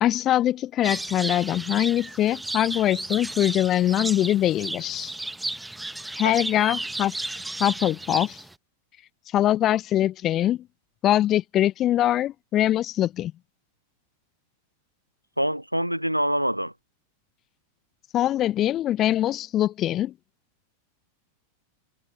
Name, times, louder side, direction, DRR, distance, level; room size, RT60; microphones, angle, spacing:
voice 1, 0.0-5.1 6.2-7.1 7.6-8.4 9.3-10.7 11.0-13.3 18.1-20.1, left 12 dB, 30° left, 0.6 m, -23 dB
sound 1, 0.8-8.6, right 2 dB, 5° right, 1.4 m, -33 dB
voice 2, 15.4-16.7, equal, 90° right, 0.8 m, -25 dB
figure-of-eight pair, 90°, 0 cm